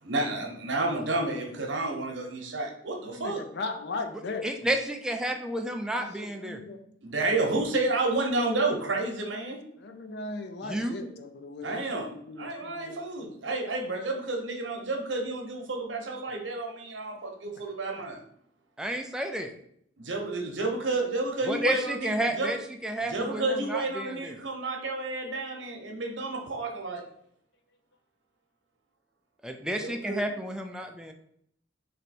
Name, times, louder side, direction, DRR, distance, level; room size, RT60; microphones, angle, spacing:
voice 1, 0.0-3.4 7.0-9.6 11.6-12.1 12.4-18.2 20.0-22.5 23.1-27.0 29.8-30.2, right 2 dB, 85° right, 1 dB, 0.9 m, -30 dB
voice 2, 3.0-4.7 5.9-6.8 9.8-13.3 17.4-17.6 17.9-18.0, left 3 dB, 65° left, 7 dB, 0.5 m, -38 dB
voice 3, 4.4-6.6 10.6-11.0 18.8-19.5 21.5-24.4 29.4-31.1, right 1 dB, 5° right, 3 dB, 0.3 m, -31 dB
3.3 x 2.7 x 4.1 m, 0.68 s
head